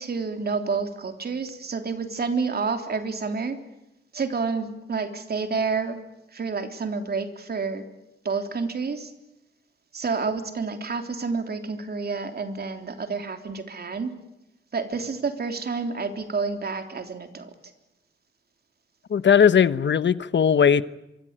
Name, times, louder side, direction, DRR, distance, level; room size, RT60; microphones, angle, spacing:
voice 1, 0.0-3.6 4.1-6.0 6.3-7.8 8.2-9.1 9.9-14.1 14.7-17.5, right 4 dB, 50° right, 3.4 m, -29 dB
voice 2, 19.1-20.8, left 7 dB, 65° left, 1.1 m, -18 dB
26.0 x 23.5 x 8.9 m
wide cardioid pair, 135°, 20 cm